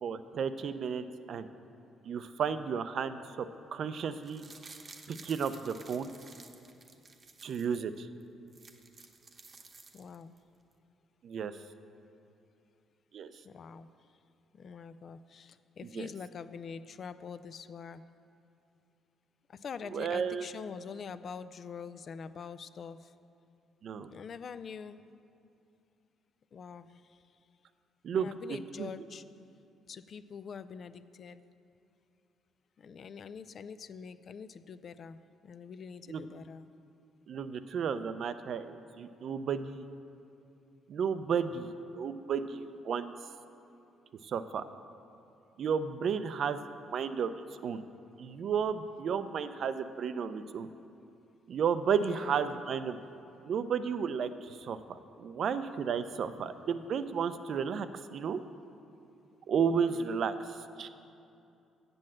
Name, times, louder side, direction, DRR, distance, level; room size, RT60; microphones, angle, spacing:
voice 1, 0.0-1.5 2.0-3.5 3.7-4.4 5.1-6.1 7.4-8.1 11.2-11.6 13.1-13.3 15.9-16.1 19.9-20.5 23.8-24.1 28.0-28.9 36.1-36.3 37.3-39.9 40.9-43.1 44.2-44.6 45.6-46.6 46.9-47.3 47.6-47.8 48.2-50.7 51.5-53.0 53.4-58.4 59.5-60.9, right 6 dB, 60° right, 11 dB, 0.5 m, -33 dB
sound 1, 4.1-7.8 8.2-8.3 8.5-10.4 10.7-10.8, right 4 dB, 40° right, 0.9 m, -53 dB
voice 2, 9.9-10.4 13.4-13.9 14.5-18.0 19.5-23.1 24.1-25.0 26.5-27.2 28.1-29.2 29.9-31.4 32.8-36.7 52.0-52.6 59.9-60.1, left 6 dB, 50° left, 13 dB, 0.4 m, -45 dB
7.8 x 7.4 x 7.5 m, 2.6 s
cardioid pair, 90°, 0 cm